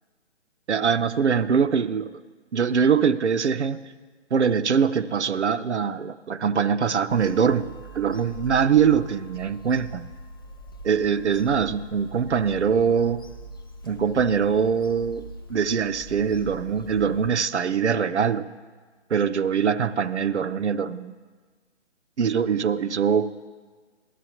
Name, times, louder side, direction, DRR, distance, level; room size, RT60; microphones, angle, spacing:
voice 1, 0.7-2.2 2.5-3.8 4.3-10.1 10.8-13.2 13.8-15.2 15.5-18.5 19.1-21.1 22.2-23.3, right 6 dB, 70° right, 14 dB, 0.6 m, -23 dB
Bird vocalization bird call bird song / Telephone, 7.1-17.3, equal, 20° left, 0.5 m, -42 dB
13.5 x 12.5 x 2.9 m, 1.4 s
figure-of-eight pair, 140°, 35 cm